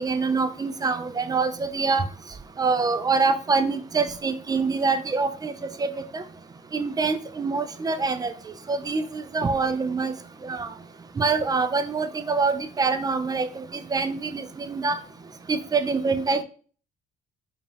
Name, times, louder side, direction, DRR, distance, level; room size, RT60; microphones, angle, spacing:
voice 1, 0.0-2.0 2.6-5.5 5.8-5.9 6.1-6.2 6.7-8.3 8.7-10.1 10.4-10.7 11.2-13.6 13.9-15.0 15.5-16.4, right 4 dB, 20° right, 10 dB, 0.4 m, -25 dB
5.0 x 2.3 x 3.4 m, 0.41 s
cardioid pair, 110°, 17 cm